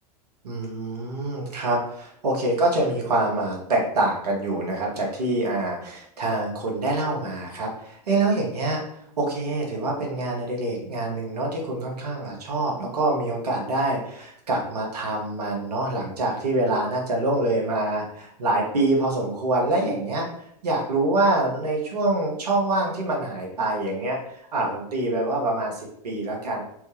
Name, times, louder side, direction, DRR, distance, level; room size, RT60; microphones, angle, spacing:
voice 1, 0.4-8.8 9.2-20.3 20.6-24.2 24.5-26.6, right 2 dB, 75° right, -1 dB, 0.9 m, -25 dB
3.4 x 2.1 x 3.1 m, 0.72 s
figure-of-eight pair, 90°, 21 cm